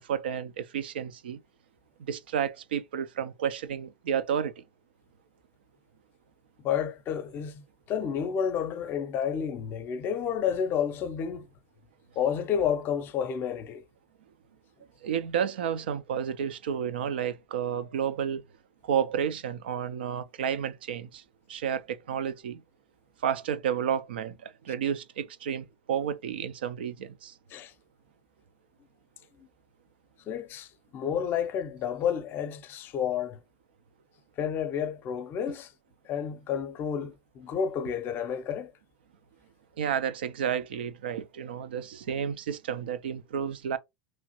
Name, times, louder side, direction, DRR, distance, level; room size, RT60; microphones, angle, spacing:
voice 1, 0.0-1.4 2.0-4.6 15.0-18.4 18.8-21.2 21.5-22.6 23.2-27.3 39.8-43.8, right 8 dB, 85° right, 0.4 m, -31 dB
voice 2, 6.6-11.5 12.2-13.8 27.5-27.7 29.4-29.5 30.3-33.4 34.4-35.7 36.0-38.7, left 8 dB, 40° left, 0.5 m, -30 dB
3.0 x 2.4 x 2.8 m
hypercardioid pair, 105°, 5 cm